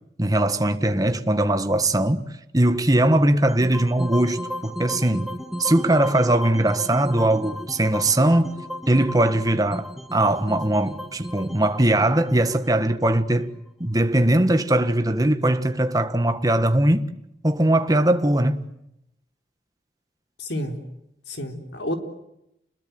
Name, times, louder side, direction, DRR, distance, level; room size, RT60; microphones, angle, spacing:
voice 1, 0.2-2.2 2.5-5.3 5.6-8.5 8.9-17.1 17.4-18.6, right 1 dB, 20° right, 1.6 m, -20 dB
sound 1, 3.5-13.7, equal, ahead, 1.7 m, -35 dB
voice 2, 20.4-20.8 21.3-22.0, left 1 dB, 90° left, 4.1 m, -29 dB
29.5 x 21.5 x 9.4 m
head